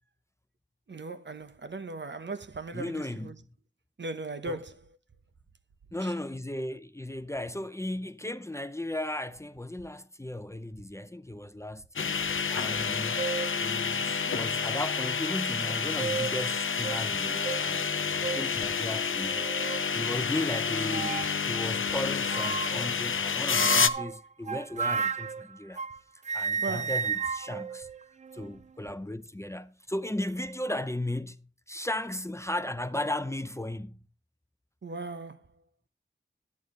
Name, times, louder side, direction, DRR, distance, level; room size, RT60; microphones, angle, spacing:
voice 1, 0.9-3.3 4.0-4.8 6.0-6.1 18.0-18.8 26.6-26.9 34.8-35.4, right 3 dB, 60° right, 1.0 m, -38 dB
voice 2, 2.7-3.5 4.4-4.6 5.9-12.2 12.5-13.3 13.6-17.9 18.3-19.5 19.9-25.8 26.3-27.9 28.3-31.4 31.7-34.0, left 1 dB, 15° left, 0.6 m, -35 dB
sound 1, 12.0-23.9, left 6 dB, 75° left, 0.6 m, -29 dB
sound 2, 12.7-12.9 13.2-13.6 14.3-14.4 15.7-16.4 16.8-17.0 17.4-17.6 18.2-18.5 19.2-19.9 20.9-21.4 22.3-22.9 23.5-26.0 26.2-28.6, right 5 dB, 35° right, 0.4 m, -33 dB
10.5 x 9.8 x 3.8 m
wide cardioid pair, 60°, 21 cm